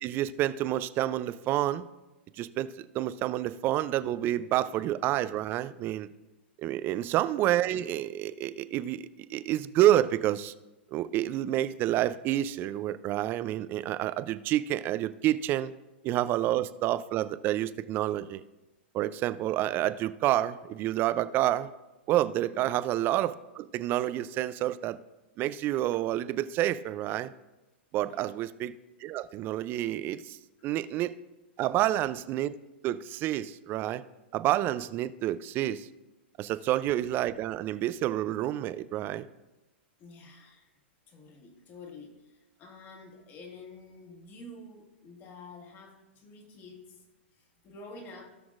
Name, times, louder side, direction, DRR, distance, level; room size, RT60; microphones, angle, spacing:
voice 1, 0.0-1.9 2.4-6.1 6.6-10.5 10.9-15.7 16.0-18.4 18.9-21.7 22.1-25.0 25.4-27.3 27.9-28.7 29.0-30.4 30.6-31.1 31.6-32.5 32.8-34.0 34.3-35.9 36.4-39.3, right 13 dB, 35° right, 15 dB, 0.4 m, -29 dB
voice 2, 22.5-22.8 28.0-28.4 30.6-30.7 36.4-36.7 40.0-40.8 41.1-47.0 47.3-48.3, left 2 dB, 35° left, 2 dB, 1.8 m, -49 dB
16.5 x 6.1 x 2.5 m, 1.0 s
hypercardioid pair, 115°, 6 cm